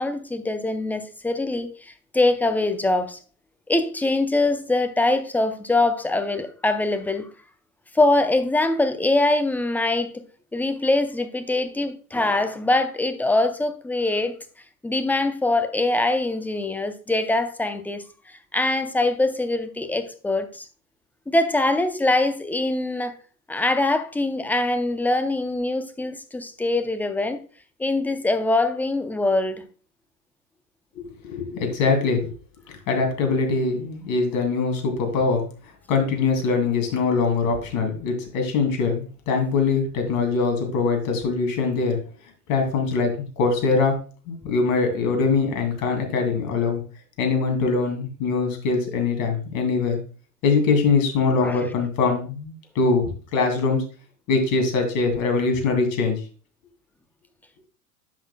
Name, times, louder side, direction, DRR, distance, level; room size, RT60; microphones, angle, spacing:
voice 1, 0.0-3.2 3.7-7.3 7.9-10.2 10.5-14.4 14.8-18.0 18.5-20.7 21.3-23.1 23.5-27.4 27.8-29.6 51.4-51.6, left 2 dB, 5° left, 0.6 m, -23 dB
voice 2, 31.2-32.3 32.9-35.4 35.9-42.0 42.5-43.1 43.4-43.9 44.3-46.8 47.2-50.0 50.4-53.8 54.3-56.2, left 4 dB, 45° left, 2.6 m, -22 dB
10.0 x 6.4 x 2.2 m
hypercardioid pair, 90°, 46 cm